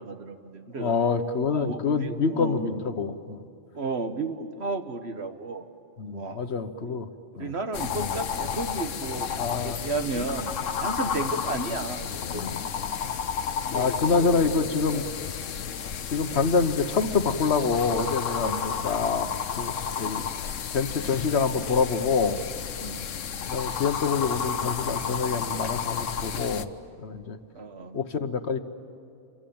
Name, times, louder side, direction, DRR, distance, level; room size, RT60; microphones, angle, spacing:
voice 1, 0.0-1.0 1.5-2.8 3.7-5.7 6.1-6.5 6.9-7.0 7.4-9.3 9.6-10.5 10.8-12.6 22.8-23.1 27.6-28.0, right 3 dB, 60° right, 7 dB, 1.6 m, -33 dB
voice 2, 0.8-3.4 6.0-7.1 7.4-7.5 9.4-9.8 13.7-15.0 16.1-19.3 19.5-20.2 20.7-22.4 23.5-26.7 27.0-27.4 27.9-28.6, left 5 dB, 60° left, 9 dB, 1.3 m, -26 dB
sound 1, 7.7-26.6, left 7 dB, 90° left, 1.2 m, -32 dB
28.0 x 23.5 x 8.7 m, 2.6 s
omnidirectional pair, 1.3 m